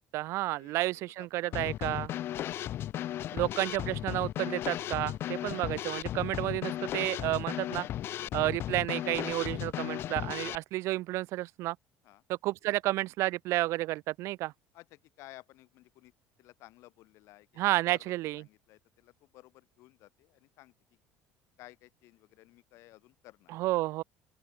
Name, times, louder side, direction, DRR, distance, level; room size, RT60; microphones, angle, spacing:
voice 1, 0.0-2.1 3.3-7.9 8.3-11.8 12.4-14.5 17.6-18.4 23.5-24.0, right 18 dB, 65° right, 0.8 m, -31 dB
voice 2, 1.2-1.7 12.0-12.2 14.7-16.1 16.4-21.0 21.6-23.5, left 18 dB, 65° left, 6.6 m, -56 dB
Drum kit / Snare drum, 1.5-10.6, left 12 dB, 50° left, 1.2 m, -35 dB
open air
cardioid pair, 135°, 5 cm